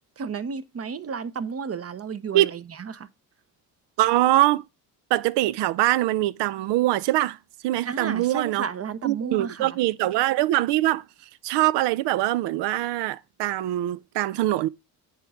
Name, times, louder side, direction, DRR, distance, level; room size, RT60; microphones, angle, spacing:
voice 1, 0.2-3.1 7.8-9.8, right 6 dB, 35° right, 0.7 m, -32 dB
voice 2, 4.0-4.6 5.1-7.4 7.6-8.7 9.0-11.0 11.4-14.7, right 15 dB, 70° right, 0.6 m, -23 dB
9.1 x 4.6 x 3.5 m
supercardioid pair, 70°, 43 cm